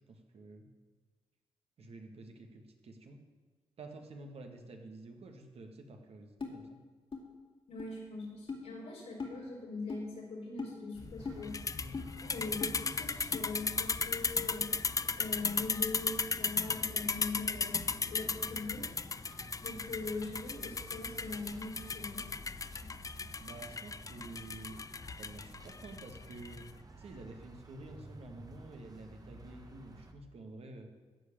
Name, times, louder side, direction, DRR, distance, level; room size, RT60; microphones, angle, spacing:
voice 1, 0.1-0.7 1.8-3.2 3.8-6.8 11.8-12.0 19.6-19.8 23.4-24.8 25.2-26.7 27.0-30.9, right 2 dB, 65° right, 4 dB, 1.8 m, -50 dB
sound 1, 6.4-6.5 7.1-7.2 7.8-7.9 8.5-8.6 9.2-9.3 9.9-10.0 10.6-10.7 11.2-11.4 11.9-12.1 12.6-12.7 13.3-13.4, left 4 dB, 50° left, 2.5 m, -39 dB
voice 2, 7.7-11.6 12.2-14.7 15.1-18.9 19.6-22.2, left 3 dB, 85° left, -3 dB, 3.8 m, -42 dB
sound 2, 11.0-26.7, left 4 dB, 30° left, 0.5 m, -36 dB
sound 3, 11.2-30.1, right 2 dB, 35° right, 1.5 m, -53 dB
14.0 x 5.0 x 8.9 m, 1.4 s
supercardioid pair, 55°, 11 cm